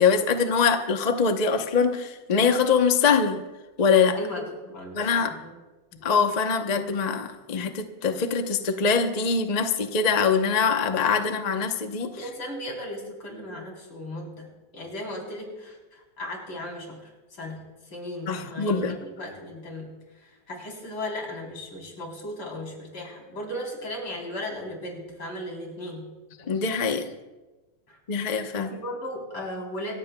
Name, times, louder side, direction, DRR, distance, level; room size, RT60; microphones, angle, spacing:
voice 1, 0.0-3.4 3.8-4.2 4.9-5.4 6.0-12.1 18.3-19.0 26.4-27.1 28.1-28.7, left 5 dB, 45° left, 6 dB, 0.5 m, -23 dB
voice 2, 4.2-5.5 6.0-6.1 12.2-17.0 17.3-17.6 17.9-19.9 20.2-26.0 27.9-28.0 28.5-30.0, left 1 dB, 75° left, -1 dB, 4.6 m, -36 dB
26.5 x 14.5 x 2.3 m, 1.2 s
omnidirectional pair, 2.2 m